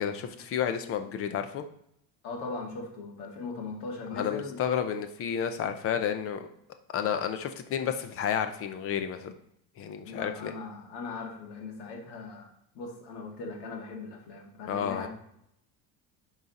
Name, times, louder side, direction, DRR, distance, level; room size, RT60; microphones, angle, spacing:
voice 1, 0.0-1.6 4.1-6.5 6.9-9.3 9.8-10.5 14.7-15.1, left 8 dB, 30° left, 9 dB, 0.5 m, -31 dB
voice 2, 2.2-4.6 10.0-12.5 12.8-15.1, left 4 dB, 55° left, 0 dB, 2.0 m, -39 dB
10.5 x 4.1 x 4.0 m, 0.74 s
cardioid pair, 175°, 48 cm